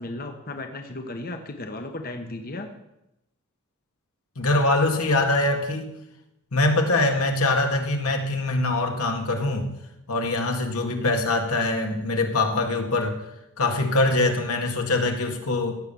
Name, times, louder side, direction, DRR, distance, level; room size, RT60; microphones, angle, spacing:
voice 1, 0.0-2.7 11.0-11.3, left 2 dB, 45° left, 5 dB, 1.0 m, -35 dB
voice 2, 4.4-5.9 6.5-9.7 10.1-13.2 13.6-15.7, left 2 dB, 90° left, 3 dB, 2.0 m, -23 dB
16.5 x 7.4 x 7.0 m, 0.90 s
head